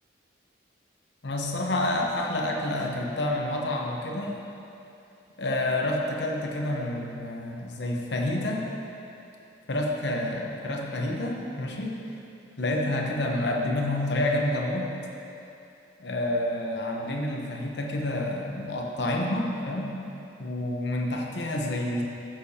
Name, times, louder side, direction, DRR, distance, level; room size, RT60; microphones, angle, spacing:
voice 1, 1.2-4.4 5.4-8.7 9.7-12.0 12.6-14.9 16.0-20.0 20.4-22.0, left 1 dB, 60° left, 0 dB, 0.9 m, -28 dB
13.5 x 6.6 x 2.8 m, 2.9 s
head